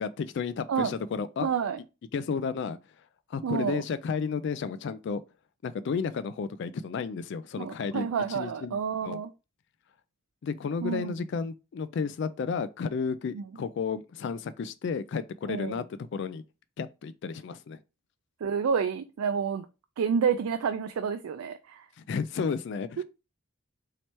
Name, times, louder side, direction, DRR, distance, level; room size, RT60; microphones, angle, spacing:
voice 1, 0.0-1.5 2.1-2.8 3.3-5.2 5.6-9.2 10.4-15.8 16.1-16.4 16.8-17.8 22.0-23.0, left 5 dB, 55° left, 0.3 m, -32 dB
voice 2, 1.4-1.8 3.4-3.8 7.6-9.3 10.8-11.2 13.3-13.4 15.5-15.8 18.4-19.7 20.0-21.8, right 6 dB, 90° right, 0.4 m, -29 dB
3.2 x 2.9 x 4.4 m
head